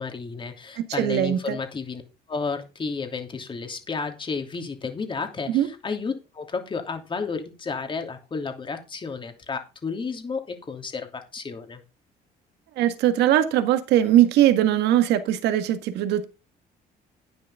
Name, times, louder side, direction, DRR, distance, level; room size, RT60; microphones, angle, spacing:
voice 1, 0.0-2.0 2.3-11.8, left 4 dB, 30° left, 2.9 m, -32 dB
voice 2, 0.8-1.6 5.5-5.7 12.8-16.2, right 12 dB, 85° right, 1.7 m, -20 dB
11.0 x 10.0 x 3.7 m
cardioid pair, 110°, 17 cm